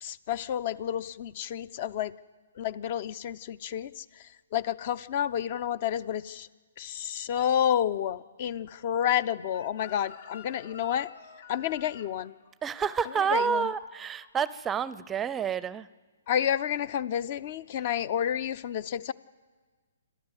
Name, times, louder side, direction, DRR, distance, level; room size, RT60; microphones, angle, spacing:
voice 1, 0.0-2.1 2.6-4.0 4.5-6.5 6.8-11.1 11.5-12.3 13.3-13.6 16.3-19.1, left 10 dB, 45° left, 20 dB, 0.7 m, -30 dB
Chicken rooster, 9.5-14.5 14.8-15.1, left 7 dB, 60° left, 1.7 m, -50 dB
voice 2, 12.6-15.9, right 6 dB, 15° right, 18 dB, 0.5 m, -29 dB
28.0 x 13.0 x 8.2 m, 1.4 s
hypercardioid pair, 135°, 0 cm